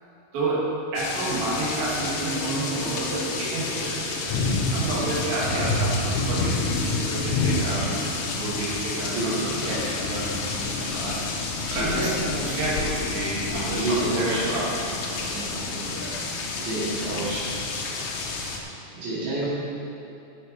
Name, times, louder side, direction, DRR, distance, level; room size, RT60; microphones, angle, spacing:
voice 1, 0.3-0.7 0.9-8.0 8.3-16.2, right 2 dB, 65° right, -8 dB, 3.8 m, -30 dB
sound 1, 1.0-18.6, left 3 dB, 75° left, 1.8 m, -29 dB
voice 2, 5.5-5.8 9.0-10.0 11.7-12.1 13.7-14.5 16.6-17.5 18.9-19.5, right 2 dB, 80° right, -8 dB, 4.5 m, -29 dB
13.5 x 7.1 x 4.6 m, 2.8 s
omnidirectional pair, 4.8 m